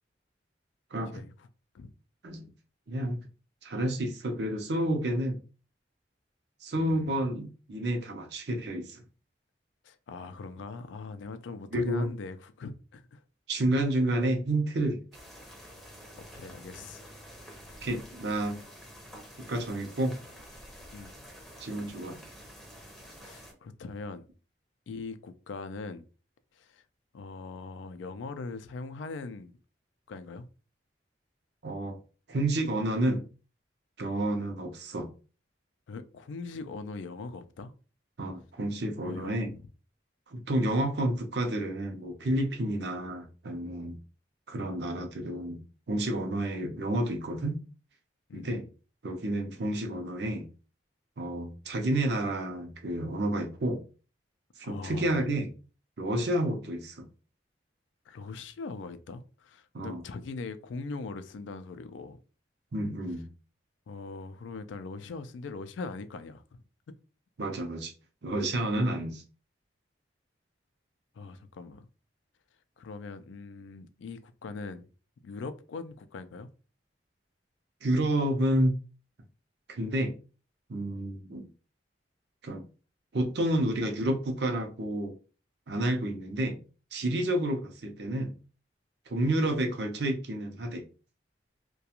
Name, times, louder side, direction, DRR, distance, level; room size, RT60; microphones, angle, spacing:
voice 1, 1.1-1.5 1.7-1.9 6.7-7.3 9.8-13.2 16.2-17.1 17.4-17.6 20.9-21.2 23.2-24.3 24.9-26.0 26.5-26.8 27.1-29.5 30.1-30.5 35.9-37.7 39.0-39.4 48.3-48.5 54.6-55.2 58.1-62.2 63.9-66.4 66.9-67.0 71.1-71.9 72.8-74.9 75.2-76.5, left 3 dB, 85° left, 0.3 m, -41 dB
voice 2, 2.9-3.2 3.6-5.4 6.6-9.0 11.7-12.1 13.5-15.0 17.8-18.6 19.4-20.1 21.6-22.2 31.6-32.0 32.3-33.2 34.0-35.1 38.2-39.5 40.3-44.0 44.5-45.6 45.9-47.6 48.3-48.6 49.0-50.5 51.2-53.8 54.6-55.5 56.0-57.1 59.7-60.0 62.7-63.3 67.4-67.9 68.2-69.2 77.8-78.7 79.7-80.1 80.7-81.5 82.4-82.6 83.1-85.1 85.7-86.6 86.9-88.3 89.1-90.8, right 1 dB, 60° right, 0.6 m, -30 dB
sound 1, 15.1-23.5, equal, ahead, 0.6 m, -49 dB
2.4 x 2.2 x 2.8 m
head